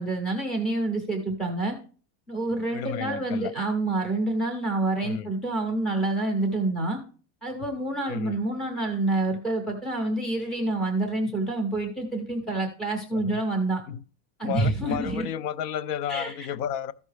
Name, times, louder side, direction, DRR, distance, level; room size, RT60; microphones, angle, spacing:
voice 1, 0.0-1.8 2.3-7.0 7.4-13.8 14.4-15.3 16.1-16.5, right 2 dB, ahead, 0.3 m, -27 dB
voice 2, 2.7-3.5 5.0-5.3 8.1-8.4 13.1-13.4 13.9-14.0 14.4-16.9, left 9 dB, 80° left, 0.7 m, -32 dB
13.5 x 5.3 x 3.2 m
cardioid pair, 180°, 46 cm